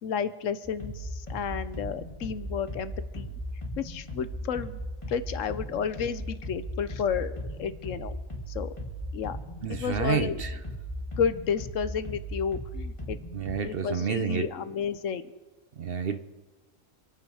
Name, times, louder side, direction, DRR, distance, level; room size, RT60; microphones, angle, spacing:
voice 1, 0.0-3.3 3.8-4.8 5.1-8.2 8.5-8.7 9.1-9.4 9.7-10.4 11.2-13.2 13.6-15.3, left 7 dB, 75° left, 13 dB, 1.1 m, -31 dB
sound 1, 0.6-13.5, equal, 20° left, 2.6 m, -37 dB
voice 2, 9.6-10.5 13.3-14.5 15.8-16.2, right 7 dB, 55° right, 10 dB, 0.8 m, -29 dB
26.0 x 9.6 x 4.9 m, 1.2 s
omnidirectional pair, 1.4 m